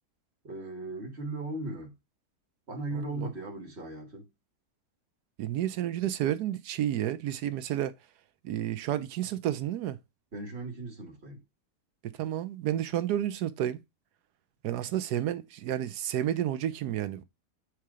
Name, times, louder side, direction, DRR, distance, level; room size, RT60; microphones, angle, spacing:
voice 1, 0.4-1.9 2.7-4.3 10.3-11.4, right 2 dB, 40° right, 1.9 m, -37 dB
voice 2, 5.4-7.9 8.4-10.0 12.0-13.8 14.6-17.2, right 11 dB, 80° right, 1.2 m, -31 dB
4.8 x 4.5 x 4.8 m
omnidirectional pair, 1.7 m